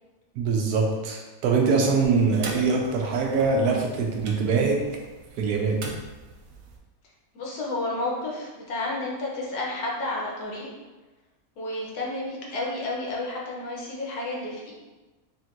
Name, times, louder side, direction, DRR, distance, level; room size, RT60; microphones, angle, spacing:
voice 1, 0.4-4.8 5.4-5.8, right 4 dB, 85° right, 1 dB, 1.2 m, -23 dB
sound 1, 2.0-6.8, right 3 dB, 65° right, 0.9 m, -41 dB
voice 2, 7.3-10.7 11.6-14.7, left 2 dB, 80° left, -3 dB, 1.5 m, -31 dB
4.3 x 3.5 x 2.5 m, 1.2 s
omnidirectional pair, 1.6 m